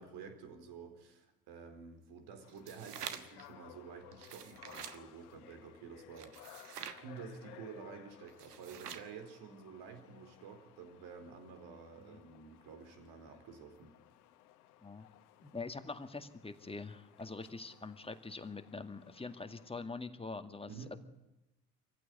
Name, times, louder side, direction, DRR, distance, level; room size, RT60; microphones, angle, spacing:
voice 1, 0.0-13.9 20.7-20.9, right 6 dB, 55° right, 7 dB, 4.3 m, -50 dB
sound 1, 2.4-19.7, left 13 dB, 70° left, 1.4 m, -59 dB
sound 2, 2.5-3.4 4.1-5.0 6.2-7.0 8.3-9.1, right 8 dB, 80° right, 1.4 m, -46 dB
voice 2, 15.4-21.0, left 3 dB, 10° left, 8 dB, 2.0 m, -44 dB
25.5 x 15.5 x 9.5 m, 0.94 s
figure-of-eight pair, 55°, 46 cm